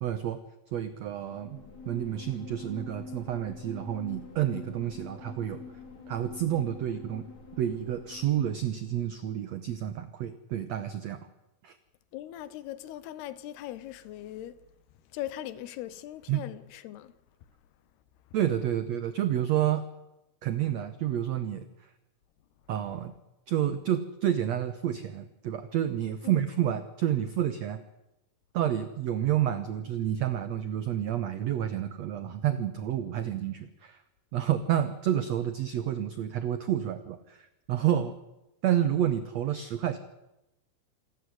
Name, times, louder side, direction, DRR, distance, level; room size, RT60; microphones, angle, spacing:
voice 1, 0.0-0.4 0.7-5.6 6.1-7.3 7.6-11.3 11.6-11.8 16.3-16.4 18.3-19.8 20.4-21.9 22.7-23.1 23.5-27.8 28.5-34.0 34.3-38.2 38.6-40.0, right 11 dB, 85° right, 1.5 m, -29 dB
sound 1, 1.2-9.1, left 4 dB, 45° left, 4.7 m, -46 dB
voice 2, 12.1-14.6 15.1-17.1 26.2-26.4, left 13 dB, 85° left, 3.0 m, -40 dB
27.0 x 12.5 x 9.7 m
omnidirectional pair, 4.5 m